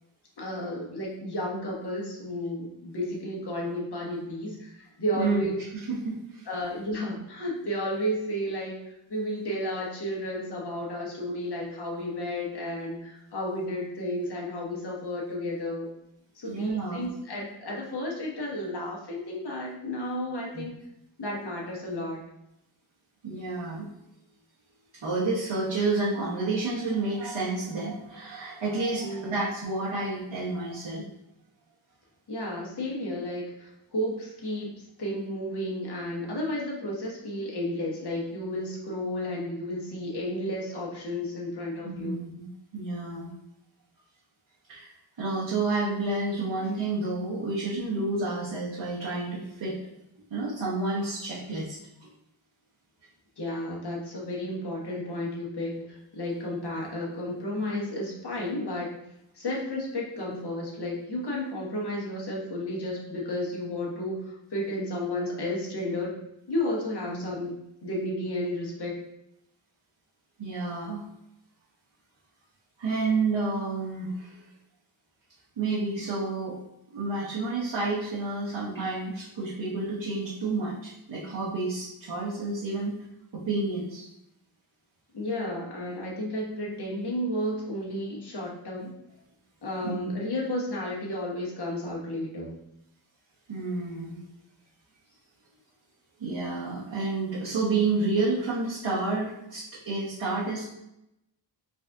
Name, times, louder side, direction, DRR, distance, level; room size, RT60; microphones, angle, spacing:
voice 1, 0.4-5.6 6.5-15.9 16.3-20.8 21.2-22.2 29.0-29.4 32.3-42.2 53.4-58.9 59.3-66.2 66.5-67.5 67.8-69.0 85.1-88.9 89.6-92.6, left 1 dB, 60° left, -3 dB, 1.3 m, -32 dB
voice 2, 5.2-5.5 5.8-6.5 16.5-17.0 20.5-20.6 23.2-23.9 24.9-31.0 41.8-42.5 42.7-43.3 44.7-49.8 50.3-52.1 67.1-67.5 70.4-71.1 72.8-74.4 75.6-76.6 76.9-83.0 83.3-84.1 89.8-90.1 93.5-94.2 96.2-100.7, right 3 dB, 80° right, -8 dB, 1.1 m, -30 dB
4.0 x 2.6 x 3.4 m, 0.84 s
wide cardioid pair, 80°, 44 cm